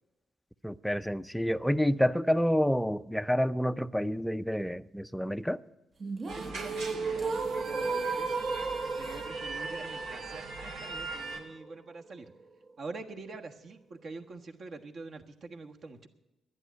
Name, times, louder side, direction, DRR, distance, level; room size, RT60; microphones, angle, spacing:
voice 1, 0.6-5.6, equal, ahead, 0.4 m, -28 dB
sound 1, 6.0-12.0, right 4 dB, 35° right, 0.8 m, -35 dB
voice 2, 6.2-8.5 9.0-12.3 12.8-16.1, right 3 dB, 50° right, 1.3 m, -45 dB
sound 2, 6.3-11.4, right 3 dB, 80° right, 2.5 m, -41 dB
11.0 x 10.0 x 9.4 m
cardioid pair, 90°, 0 cm